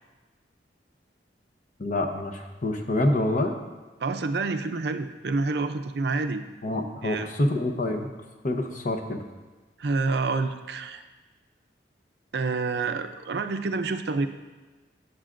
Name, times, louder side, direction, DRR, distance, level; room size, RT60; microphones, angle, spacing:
voice 1, 1.8-3.5 6.6-8.1 8.4-9.2, left 1 dB, 45° left, 3 dB, 0.9 m, -26 dB
voice 2, 4.0-6.4 7.0-7.3 9.8-11.0 12.3-14.3, right 3 dB, 65° right, 8 dB, 0.5 m, -28 dB
16.0 x 7.3 x 2.6 m, 1.2 s
head